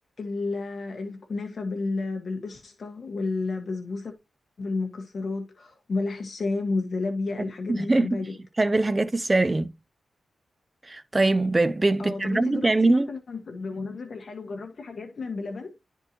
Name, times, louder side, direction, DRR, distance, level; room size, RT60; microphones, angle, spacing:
voice 1, 0.2-4.1 4.6-8.3 12.0-15.7, left 3 dB, 55° left, 1.6 m, -31 dB
voice 2, 7.7-8.2 8.6-9.7 10.8-13.1, right 2 dB, 25° right, 0.5 m, -22 dB
12.0 x 4.5 x 2.9 m
cardioid pair, 75°, 0 cm